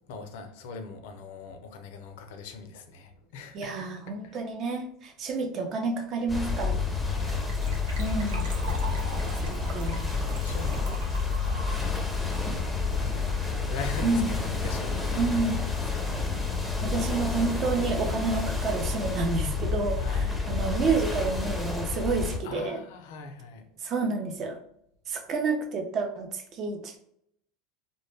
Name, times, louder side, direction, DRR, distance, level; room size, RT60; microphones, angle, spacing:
voice 1, 0.0-3.9 4.2-4.5 7.1-7.8 9.5-9.7 10.0-11.7 12.2-16.2 20.0-20.4 22.4-23.7, left 4 dB, 75° left, 0.4 m, -42 dB
voice 2, 3.5-6.8 8.0-8.4 9.5-10.1 14.0-14.2 14.5-14.6 15.2-15.6 16.8-22.8 23.8-24.6 25.1-27.0, right 4 dB, 45° right, 0.5 m, -29 dB
sound 1, 6.3-22.4, left 4 dB, ahead, 0.5 m, -29 dB
Gurgling / Trickle dribble / Fill (with liquid), 7.3-13.5 13.8-13.9 14.1-14.3 14.6-14.7, right 2 dB, 90° right, 0.6 m, -42 dB
2.1 x 2.0 x 3.1 m
supercardioid pair, 105°, 0 cm